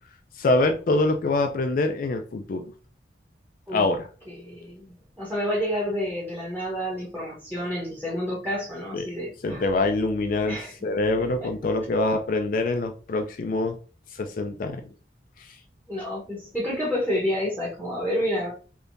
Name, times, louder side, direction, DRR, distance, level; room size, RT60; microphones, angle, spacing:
voice 1, 0.4-2.7 3.7-4.1 8.9-9.0 9.4-13.8 14.2-14.8, left 2 dB, 50° left, 5 dB, 0.4 m, -25 dB
voice 2, 4.3-9.6 10.5-10.7 11.4-11.5 15.9-18.5, equal, 10° right, -6 dB, 0.9 m, -29 dB
3.5 x 2.8 x 2.5 m, 0.36 s
head